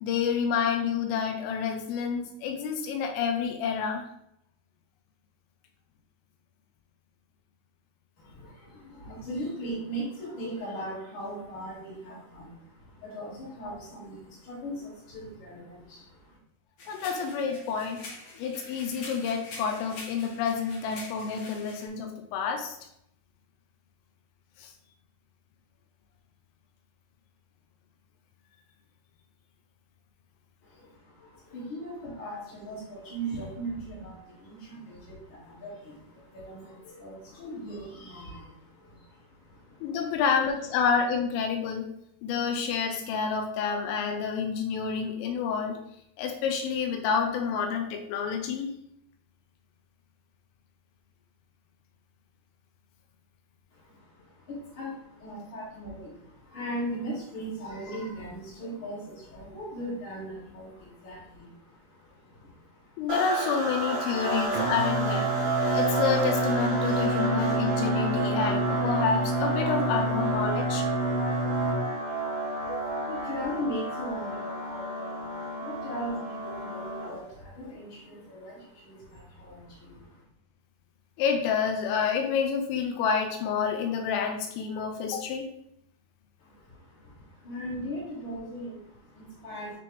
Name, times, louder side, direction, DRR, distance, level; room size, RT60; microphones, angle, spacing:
voice 1, 0.0-4.0 16.9-18.0 18.4-22.8 24.6-24.7 39.8-41.9 42.2-45.8 46.2-48.7 63.0-65.3 65.7-70.8 72.7-73.1 81.2-85.5, left 6 dB, 85° left, 4 dB, 3.1 m, -29 dB
voice 2, 8.2-16.4 30.6-40.2 53.7-63.1 64.2-64.7 70.4-80.2 86.4-89.8, right 1 dB, 45° left, -9 dB, 1.5 m, -40 dB
sound 1, 16.8-21.9, left 2 dB, 70° left, 1.8 m, -45 dB
sound 2, 63.1-77.3, right 3 dB, 40° right, 0.8 m, -31 dB
Singing, 64.5-71.8, right 1 dB, 85° right, 3.1 m, -29 dB
9.4 x 3.5 x 3.3 m, 0.76 s
omnidirectional pair, 5.9 m